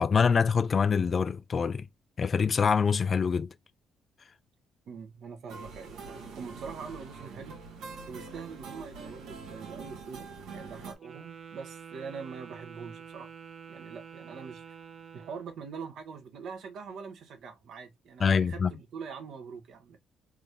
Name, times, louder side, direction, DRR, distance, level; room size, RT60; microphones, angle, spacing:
voice 1, 0.0-1.9 2.2-3.5 18.2-18.7, left 6 dB, 40° left, 0.3 m, -25 dB
voice 2, 4.8-7.6 8.1-13.3 13.7-14.6 15.1-20.0, right 5 dB, 70° right, 1.2 m, -43 dB
sound 1, 5.5-10.9, right 4 dB, 85° right, 1.4 m, -44 dB
Wind instrument woodwind instrument, 11.0-15.6, right 7 dB, 50° right, 0.6 m, -47 dB
3.7 x 2.4 x 3.3 m
cardioid pair, 90°, 0 cm